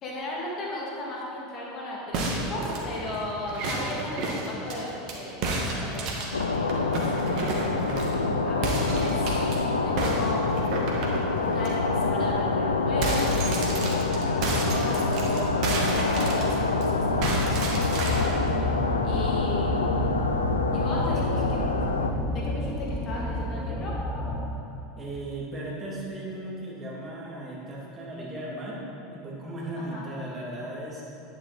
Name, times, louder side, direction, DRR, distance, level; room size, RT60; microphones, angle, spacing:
voice 1, 0.0-7.8 8.4-9.4 9.8-10.6 11.4-18.1 19.0-20.0 20.7-21.6 22.3-24.0 29.8-30.1, left 1 dB, 40° left, -4 dB, 2.5 m, -36 dB
sound 1, 2.1-5.2 5.4-8.2 8.6-9.6 10.0-11.7 12.1-12.3 12.6-16.8 17.2-18.4, right 2 dB, 50° right, 1.8 m, -31 dB
sound 2, 6.3-22.1, left 3 dB, 90° left, 0.6 m, -26 dB
sound 3, 14.7-24.7, left 1 dB, 15° left, 1.6 m, -32 dB
voice 2, 21.2-21.6 25.0-31.0, right 1 dB, 30° right, -4 dB, 2.7 m, -37 dB
10.5 x 9.3 x 4.2 m, 2.7 s
hypercardioid pair, 85°, 0 cm